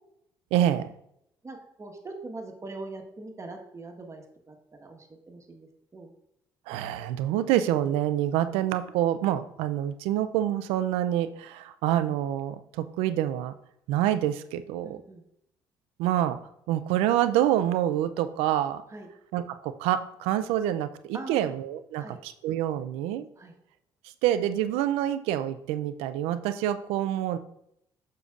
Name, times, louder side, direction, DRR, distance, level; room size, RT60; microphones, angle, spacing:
voice 1, 0.5-0.9 6.7-13.5 13.9-15.0 16.0-16.4 16.7-18.8 19.3-23.3 24.0-27.4, right 12 dB, 85° right, 12 dB, 0.4 m, -27 dB
voice 2, 1.4-6.1 14.8-15.2 18.9-19.1 21.1-21.6 22.0-22.2 23.4-23.5, right 2 dB, 30° right, 3 dB, 1.4 m, -42 dB
6.8 x 6.6 x 2.5 m, 0.77 s
supercardioid pair, 60°, 10 cm